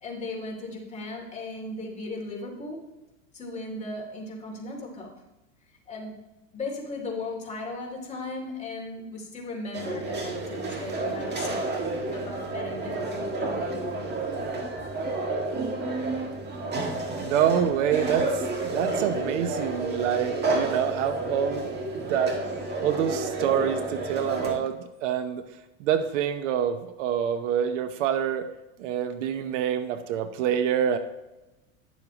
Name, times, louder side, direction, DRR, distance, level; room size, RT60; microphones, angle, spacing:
voice 1, 0.0-2.9 3.3-5.1 5.9-6.2 6.5-11.8 12.1-14.1, left 2 dB, 15° left, -2 dB, 2.8 m, -37 dB
sound 1, 9.7-24.5, right 2 dB, 25° right, 1.7 m, -30 dB
voice 2, 17.2-21.7 22.1-22.4 22.8-25.4 25.8-28.5 28.8-31.0, right 9 dB, 65° right, 9 dB, 0.9 m, -26 dB
11.0 x 7.2 x 3.0 m, 0.98 s
supercardioid pair, 125°, 40 cm